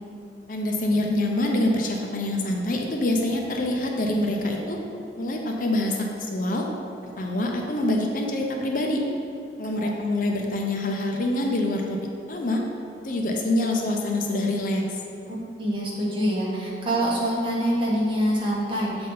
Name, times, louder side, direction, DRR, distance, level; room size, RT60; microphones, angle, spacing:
voice 1, 0.5-4.8 5.2-6.7 7.0-9.0 9.6-12.0 12.3-12.6 13.0-15.0, left 1 dB, 50° left, 1 dB, 0.6 m, -25 dB
voice 2, 15.3-19.1, equal, 30° right, -5 dB, 1.2 m, -25 dB
7.5 x 4.0 x 3.8 m, 2.5 s
head